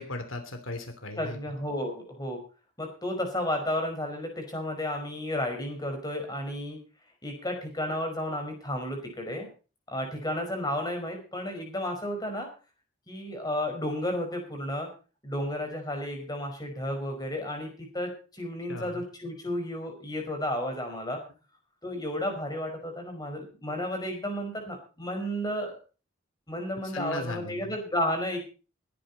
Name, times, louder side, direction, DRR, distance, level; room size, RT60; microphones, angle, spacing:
voice 1, 0.0-1.4 18.7-19.0 26.9-27.8, left 2 dB, 80° left, 7 dB, 3.0 m, -37 dB
voice 2, 1.2-2.4 2.8-6.8 7.2-9.5 9.9-12.5 13.1-14.9 15.2-21.2 21.8-25.7 26.5-28.4, left 1 dB, 20° left, 4 dB, 5.1 m, -32 dB
21.5 x 10.0 x 4.1 m, 0.35 s
head